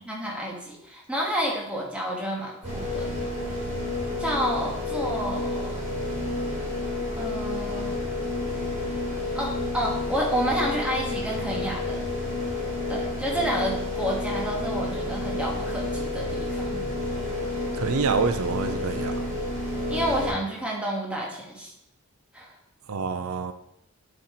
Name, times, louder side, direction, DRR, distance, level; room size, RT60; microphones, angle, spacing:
voice 1, 0.0-3.1 4.2-5.8 7.2-8.0 9.3-12.1 12.9-16.8 19.9-21.7 22.3-22.6, equal, 5° right, -2 dB, 1.4 m, -30 dB
sound 1, 2.6-20.3, left 2 dB, 30° right, 2.7 m, -30 dB
voice 2, 17.7-19.2 22.9-23.5, right 5 dB, 80° right, 10 dB, 0.5 m, -27 dB
8.7 x 4.3 x 4.3 m, 0.76 s
head